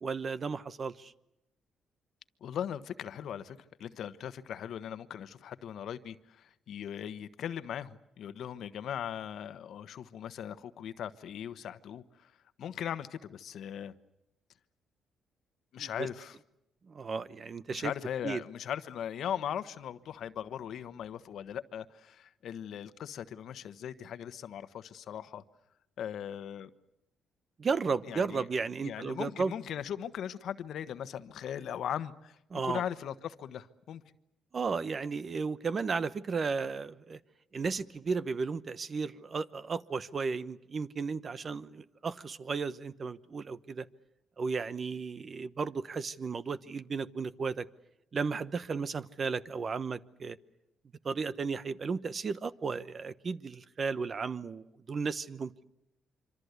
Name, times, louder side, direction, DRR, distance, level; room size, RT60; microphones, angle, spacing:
voice 1, 0.0-1.1 15.8-16.1 16.9-17.9 18.2-18.4 27.6-29.5 32.5-32.8 34.5-37.2 37.5-43.9 44.4-47.7 48.1-50.4 51.0-55.6, right 5 dB, 40° right, 1.0 m, -34 dB
voice 2, 2.4-12.3 12.6-13.9 15.7-16.4 17.7-25.4 26.0-26.7 28.0-28.5 28.8-32.4 32.6-34.0, left 9 dB, 70° left, 1.2 m, -39 dB
26.0 x 25.5 x 8.2 m
cardioid pair, 90°, 0 cm